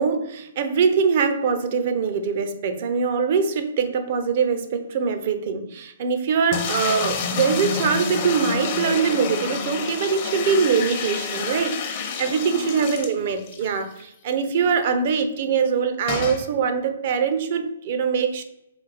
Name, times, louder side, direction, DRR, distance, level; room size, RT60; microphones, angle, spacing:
voice 1, 0.0-18.4, right 6 dB, 50° right, 8 dB, 0.5 m, -23 dB
sound 1, 6.5-13.7 14.0-14.1 14.3-14.4 16.1-16.4, left 5 dB, 40° left, 0.7 m, -28 dB
4.0 x 3.7 x 3.3 m, 0.85 s
figure-of-eight pair, 125°, 0 cm